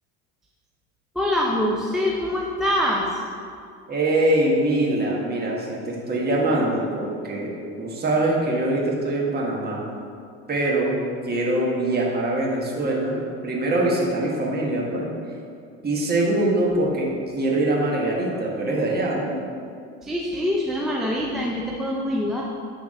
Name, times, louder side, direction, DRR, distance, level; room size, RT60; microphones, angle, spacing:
voice 1, 1.2-3.1 20.0-22.4, left 1 dB, ahead, -3 dB, 0.5 m, -24 dB
voice 2, 3.9-9.9 10.5-11.0 11.2-15.1 15.8-19.4, right 1 dB, 30° right, -3 dB, 1.5 m, -23 dB
8.5 x 3.6 x 3.7 m, 2.3 s
supercardioid pair, 100°, 34 cm